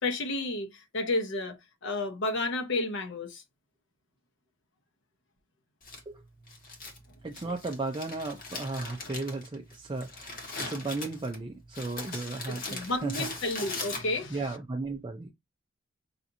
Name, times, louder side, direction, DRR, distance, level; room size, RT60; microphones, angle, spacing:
voice 1, 0.0-3.4 12.5-14.4, left 2 dB, 60° left, 0.9 m, -31 dB
Crumpling crinkling, 5.8-14.4, left 3 dB, 40° left, 1.4 m, -41 dB
voice 2, 7.2-13.4 14.3-15.3, right 3 dB, 20° right, 0.4 m, -35 dB
5.8 x 2.8 x 2.6 m
head